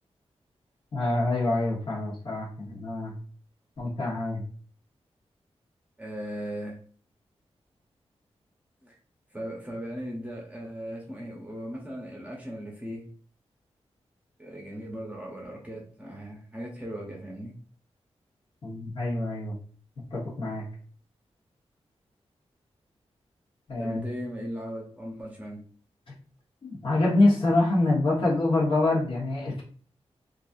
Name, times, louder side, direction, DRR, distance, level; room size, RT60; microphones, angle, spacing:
voice 1, 0.9-3.1 3.8-4.4 18.6-19.5 20.1-20.6 23.7-24.0 26.1-26.2 26.6-29.6, left 2 dB, 50° left, -4 dB, 1.3 m, -25 dB
voice 2, 6.0-6.8 8.8-9.0 9.3-13.1 14.4-17.5 23.8-25.6, equal, 15° right, -2 dB, 0.8 m, -38 dB
4.0 x 2.5 x 2.6 m, 0.44 s
wide cardioid pair, 175°, 11 cm